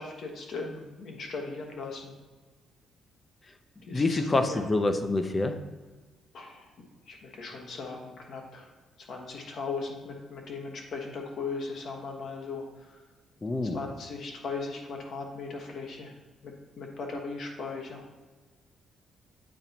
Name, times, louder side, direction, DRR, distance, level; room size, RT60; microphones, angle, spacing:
voice 1, 0.0-2.1 3.9-4.7 6.3-6.7 7.1-8.7 9.0-12.9 13.7-16.1 16.4-18.0, left 4 dB, 60° left, 1 dB, 1.3 m, -38 dB
voice 2, 3.9-5.5 13.4-13.8, left 2 dB, 25° left, 8 dB, 0.6 m, -26 dB
8.7 x 3.9 x 2.9 m, 1.3 s
cardioid pair, 90°, 0 cm